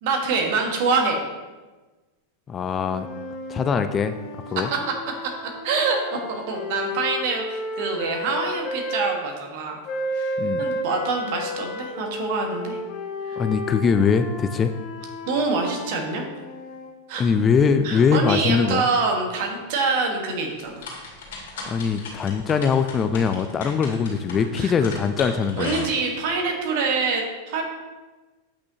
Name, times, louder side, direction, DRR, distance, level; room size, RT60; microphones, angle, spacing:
voice 1, 0.0-1.2 4.5-4.8 5.6-6.0 6.3-9.7 10.1-12.8 13.3-13.4 15.3-16.2 17.1-17.2 17.8-20.9 24.6-24.7 25.6-27.6, right 4 dB, 50° right, 1 dB, 1.5 m, -25 dB
voice 2, 2.5-3.1 3.5-4.1 4.5-4.7 10.4-10.6 13.4-14.7 17.2-18.9 21.7-25.9, left 6 dB, 25° left, 9 dB, 0.3 m, -22 dB
sound 1, 2.9-9.1 9.8-16.9, left 1 dB, 40° left, 0.9 m, -32 dB
sound 2, 20.5-26.3, left 3 dB, 55° left, 2.3 m, -37 dB
8.2 x 6.0 x 2.9 m, 1.2 s
figure-of-eight pair, 90°, 0 cm